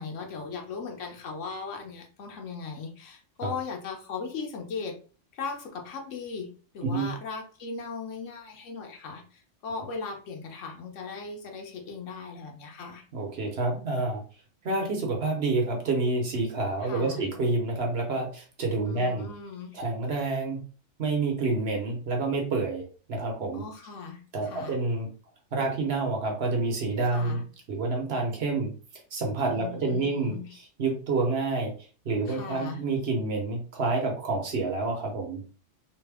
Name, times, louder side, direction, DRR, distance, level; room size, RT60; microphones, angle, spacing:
voice 1, 0.0-5.0 5.3-6.5 6.7-13.0 16.8-17.3 18.8-19.8 23.5-24.8 27.1-27.4 29.5-30.5 32.3-32.8, left 5 dB, 80° left, 2 dB, 1.1 m, -38 dB
voice 2, 13.1-14.2 14.6-19.3 19.7-20.6 21.0-22.8 23.1-23.6 24.3-25.1 25.5-27.4 27.7-28.7 29.1-30.4 30.8-31.7 32.0-35.4, right 3 dB, 60° right, 1 dB, 1.0 m, -28 dB
3.2 x 2.1 x 3.4 m, 0.38 s
omnidirectional pair, 1.3 m